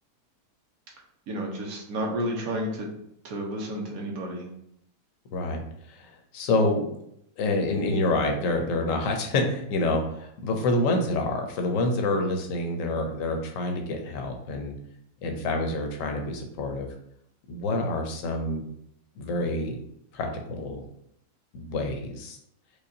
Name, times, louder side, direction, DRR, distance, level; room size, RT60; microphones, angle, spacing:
voice 1, 1.3-2.9 3.2-4.5, equal, 70° right, -1 dB, 1.3 m, -31 dB
voice 2, 5.3-5.6 5.9-6.9 7.4-14.7 15.2-16.9 17.5-18.6 19.2-19.8 20.1-20.8 21.5-22.4, left 2 dB, 65° left, 3 dB, 0.9 m, -27 dB
4.8 x 2.3 x 2.7 m, 0.74 s
omnidirectional pair, 1.6 m